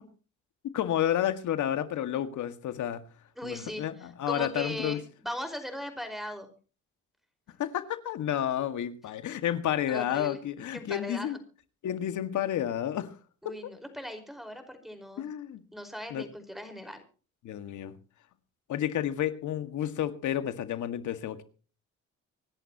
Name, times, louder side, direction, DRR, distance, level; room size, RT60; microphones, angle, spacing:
voice 1, 0.7-3.0 3.4-5.0 7.6-11.4 11.8-13.1 13.4-13.7 15.2-15.6 16.1-16.2 17.4-18.0 18.7-21.4, left 11 dB, 75° left, 1.9 m, -31 dB
voice 2, 3.4-6.5 9.9-10.4 10.7-11.4 13.4-15.2 15.7-17.0, equal, ahead, 5.0 m, -39 dB
26.0 x 11.0 x 3.0 m
cardioid pair, 90°, 30 cm